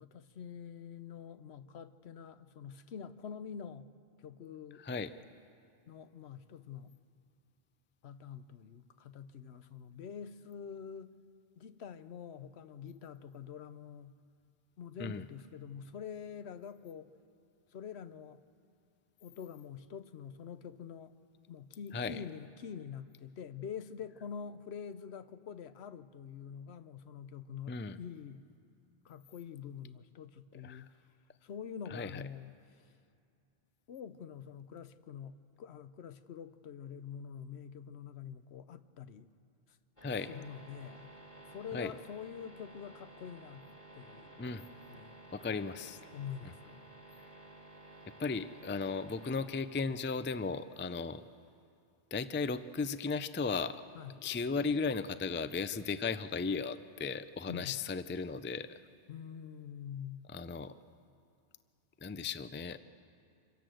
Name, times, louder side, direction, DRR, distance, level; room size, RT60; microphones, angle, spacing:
voice 1, 0.0-3.9 4.2-4.8 5.9-6.9 8.0-11.1 11.6-14.2 14.8-17.1 17.7-18.4 19.2-21.1 21.5-28.4 29.0-31.1 31.4-32.5 33.9-39.3 39.7-39.8 40.3-41.1 41.5-44.4 44.9-45.2 45.5-45.6 46.1-46.8 53.9-54.2 57.5-57.8 59.1-60.3, left 7 dB, 90° left, 1.0 m, -46 dB
voice 2, 4.8-5.1 15.0-15.2 21.9-22.2 27.7-28.0 30.6-30.8 31.9-32.2 40.0-40.3 41.7-41.9 44.4-44.6 45.3-46.0 48.2-51.2 52.1-53.8 54.2-58.7 60.3-60.7 62.0-62.8, left 4 dB, 20° left, 0.3 m, -36 dB
sound 1, 40.0-49.4, right 2 dB, 45° left, 4.7 m, -54 dB
26.5 x 17.0 x 7.7 m
omnidirectional pair, 1.1 m